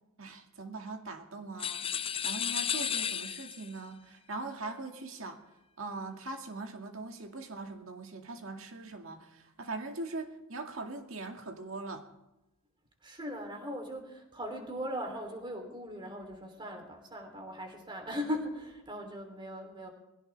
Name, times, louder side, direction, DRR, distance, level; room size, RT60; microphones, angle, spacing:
voice 1, 0.2-1.8 2.2-5.4 5.8-12.0, right 3 dB, 65° right, 5 dB, 2.2 m, -41 dB
sound 1, 1.6-3.8, left 8 dB, 25° left, 0.5 m, -33 dB
voice 2, 13.0-19.9, equal, 20° right, 4 dB, 3.2 m, -39 dB
21.5 x 16.5 x 3.4 m, 0.98 s
head